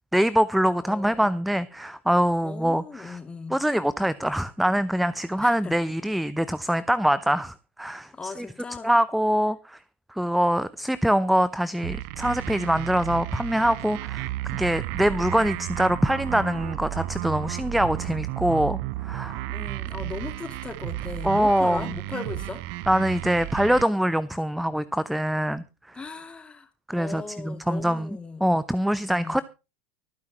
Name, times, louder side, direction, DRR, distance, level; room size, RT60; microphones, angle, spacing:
voice 1, 0.1-3.2 3.5-8.5 8.8-9.8 10.1-19.4 21.2-22.0 22.9-26.0 26.9-28.1 28.4-29.4, equal, ahead, 0.6 m, -24 dB
voice 2, 0.8-1.4 2.4-3.6 5.4-5.8 8.1-8.9 19.5-22.6 25.9-26.7 27.0-28.4 29.1-29.4, left 4 dB, 15° left, 2.4 m, -38 dB
sound 1, 11.8-23.8, right 17 dB, 50° right, 0.6 m, -33 dB
24.5 x 9.5 x 3.0 m
figure-of-eight pair, 80°, 6 cm